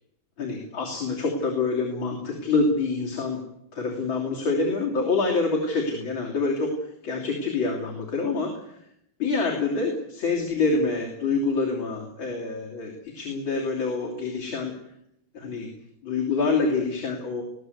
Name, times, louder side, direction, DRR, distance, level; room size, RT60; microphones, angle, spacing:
voice 1, 0.4-3.4 3.7-8.8 9.2-14.7 15.3-15.7 16.0-17.4, left 3 dB, 80° left, -1 dB, 4.0 m, -26 dB
21.5 x 16.5 x 8.0 m, 0.79 s
omnidirectional pair, 2.1 m